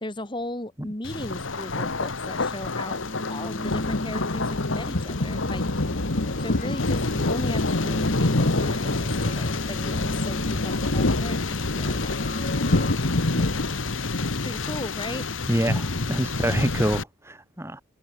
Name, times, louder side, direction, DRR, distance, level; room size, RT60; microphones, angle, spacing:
voice 1, 0.0-3.0 3.3-5.7 6.4-12.2 14.4-15.2, left 1 dB, 25° left, 1.9 m, -36 dB
Thunder, 1.0-17.0, left 2 dB, 90° left, 1.8 m, -26 dB
sound 1, 2.9-12.9, left 1 dB, 45° left, 4.9 m, -36 dB
voice 2, 15.5-17.8, equal, 15° right, 3.6 m, -26 dB
head